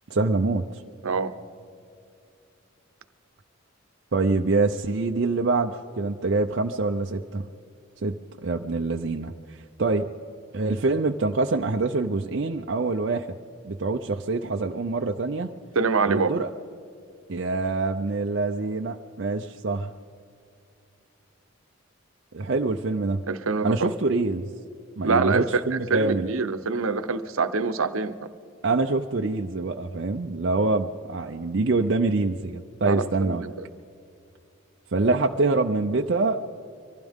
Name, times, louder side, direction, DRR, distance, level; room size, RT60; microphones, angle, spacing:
voice 1, 0.1-0.8 4.1-7.5 8.0-8.2 8.4-10.1 10.5-13.3 13.6-15.5 16.1-16.5 17.3-19.9 22.3-23.2 23.6-24.5 25.0-26.3 28.6-33.5 34.9-36.5, right 3 dB, 55° right, 3 dB, 0.5 m, -25 dB
voice 2, 15.7-16.3 23.3-23.9 25.0-28.1 32.8-33.5, right 4 dB, 90° right, 11 dB, 0.8 m, -25 dB
24.5 x 15.5 x 3.6 m, 2.5 s
head